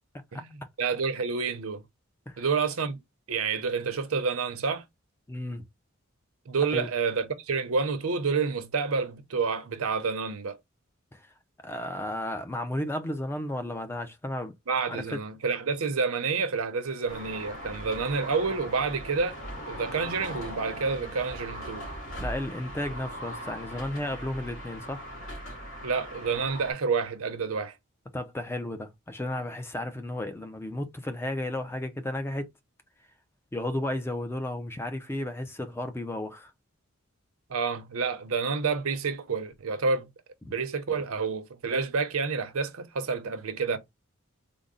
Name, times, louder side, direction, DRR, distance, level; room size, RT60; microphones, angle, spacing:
voice 1, 0.8-1.9 2.4-3.0 3.3-4.8 6.5-10.6 14.7-19.4 19.7-21.8 25.8-27.8 37.5-40.1 40.5-43.8, right 5 dB, 85° right, 0.7 m, -29 dB
voice 2, 5.3-5.6 6.7-6.9 11.1-11.3 11.6-14.5 14.9-15.2 22.2-25.0 28.1-32.5 33.5-36.5, left 1 dB, 10° left, 0.3 m, -33 dB
sound 1, 17.1-26.7, equal, 60° left, 2.1 m, -39 dB
3.8 x 2.0 x 3.6 m
head